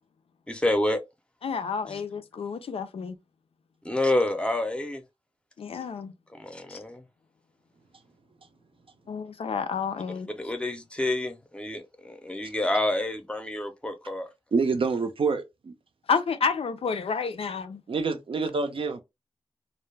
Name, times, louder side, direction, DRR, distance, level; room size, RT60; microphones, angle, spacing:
voice 1, 0.5-1.0 1.9-2.0 3.8-5.0 6.4-7.0 10.4-14.3, left 1 dB, 10° left, 0.5 m, -28 dB
voice 2, 1.4-3.1 5.6-6.1 6.7-6.8 9.1-10.3 16.1-17.8, left 5 dB, 80° left, 0.4 m, -30 dB
voice 3, 14.5-15.7 17.9-19.0, right 4 dB, 70° right, 0.5 m, -27 dB
2.3 x 2.0 x 3.1 m
wide cardioid pair, 80°, 10 cm